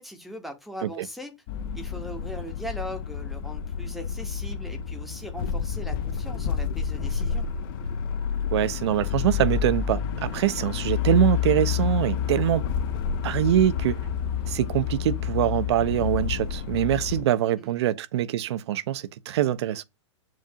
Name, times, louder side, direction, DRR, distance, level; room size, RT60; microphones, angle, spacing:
voice 1, 0.0-1.3 1.7-7.5 17.6-17.7, equal, ahead, 0.8 m, -39 dB
sound 1, 1.5-17.2, left 8 dB, 45° left, 0.6 m, -29 dB
voice 2, 8.5-12.6 13.2-14.0 14.5-19.8, right 11 dB, 60° right, 0.5 m, -24 dB
7.4 x 2.6 x 2.7 m
hypercardioid pair, 120°, 16 cm